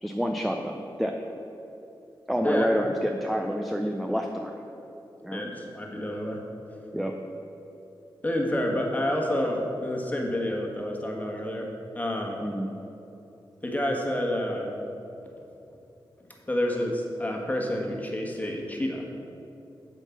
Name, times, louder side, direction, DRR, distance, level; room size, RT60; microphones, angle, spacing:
voice 1, 0.0-1.2 2.3-4.5 5.2-5.4 6.9-7.2 12.4-12.7, equal, ahead, 3 dB, 0.5 m, -28 dB
voice 2, 5.3-6.4 8.2-11.7 11.9-12.4 13.6-14.8 16.5-19.0, left 1 dB, 20° left, 0 dB, 1.4 m, -29 dB
7.9 x 4.5 x 7.0 m, 2.9 s
cardioid pair, 70°, 9 cm